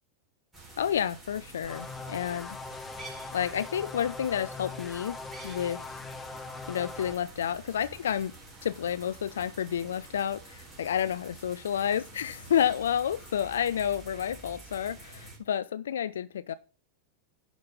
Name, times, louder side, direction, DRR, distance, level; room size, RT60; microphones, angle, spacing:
sound 1, 0.5-15.4, right 3 dB, 15° right, 4.4 m, -48 dB
voice 1, 0.8-2.6 3.3-5.2 5.4-5.8 6.7-8.3 8.6-16.5, left 9 dB, 65° left, 0.4 m, -30 dB
sound 2, 1.6-7.2, left 3 dB, 15° left, 0.8 m, -41 dB
11.0 x 5.1 x 5.4 m
figure-of-eight pair, 90°, 0 cm